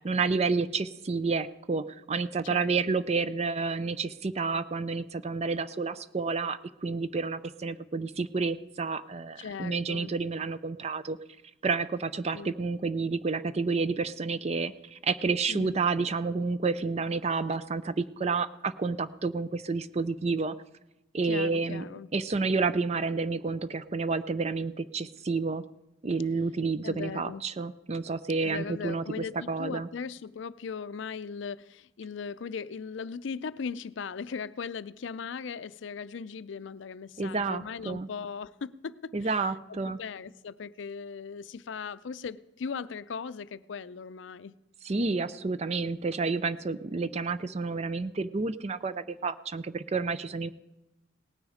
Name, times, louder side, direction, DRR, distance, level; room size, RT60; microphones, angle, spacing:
voice 1, 0.0-11.2 11.6-20.6 21.1-21.9 22.1-25.6 26.0-29.9 37.2-38.1 39.1-40.0 44.8-50.5, right 4 dB, 35° right, 0.4 m, -30 dB
voice 2, 2.4-3.0 9.4-10.1 12.3-12.5 15.5-15.8 21.2-22.1 26.8-27.5 28.4-44.6, left 6 dB, 70° left, 0.5 m, -38 dB
18.0 x 9.5 x 5.0 m
head